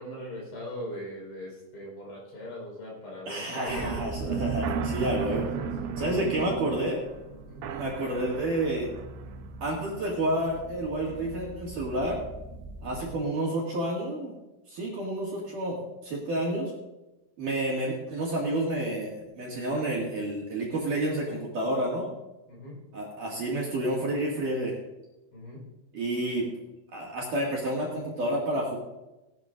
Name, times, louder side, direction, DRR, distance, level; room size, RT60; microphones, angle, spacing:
voice 1, 0.0-4.5 5.0-6.5 7.4-7.7 12.9-13.0 22.5-22.8 25.3-25.7, equal, 60° left, -3 dB, 6.9 m, -40 dB
voice 2, 3.3-5.5 6.0-7.0 7.7-8.9 9.6-12.2 12.8-14.3 14.7-16.7 17.4-22.1 22.9-24.7 25.9-26.5 26.9-28.8, right 1 dB, 50° right, -4 dB, 3.1 m, -30 dB
sound 1, 3.7-13.2, right 5 dB, 80° right, 3.4 m, -36 dB
19.0 x 12.0 x 2.6 m, 1.0 s
omnidirectional pair, 5.5 m